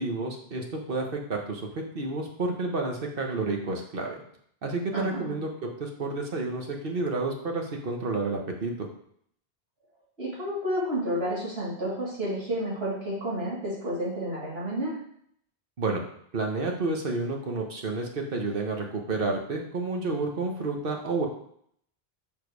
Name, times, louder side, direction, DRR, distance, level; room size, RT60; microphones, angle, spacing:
voice 1, 0.0-4.2 4.6-8.9 15.8-16.0 16.3-21.3, right 3 dB, 60° right, 2 dB, 1.4 m, -30 dB
voice 2, 4.9-5.3 10.2-15.0, equal, 85° right, -7 dB, 3.2 m, -30 dB
5.8 x 5.2 x 4.7 m, 0.66 s
omnidirectional pair, 1.0 m